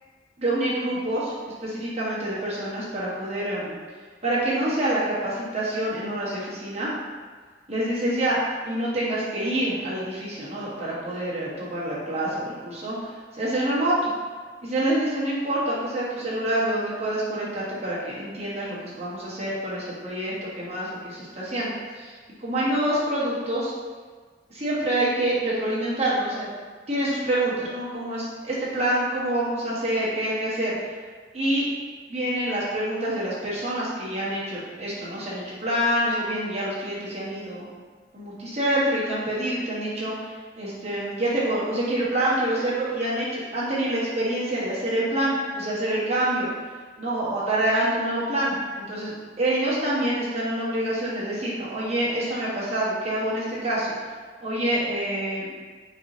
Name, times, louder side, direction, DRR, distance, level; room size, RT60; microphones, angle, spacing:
voice 1, 0.4-1.3 1.6-3.7 4.2-6.9 7.7-14.1 14.6-22.1 22.4-23.7 24.5-26.5 26.9-30.7 31.3-31.7 32.1-37.7 38.1-46.5 47.0-53.9 54.4-55.5, right 1 dB, 35° right, -8 dB, 1.1 m, -26 dB
4.6 x 2.9 x 2.6 m, 1.5 s
head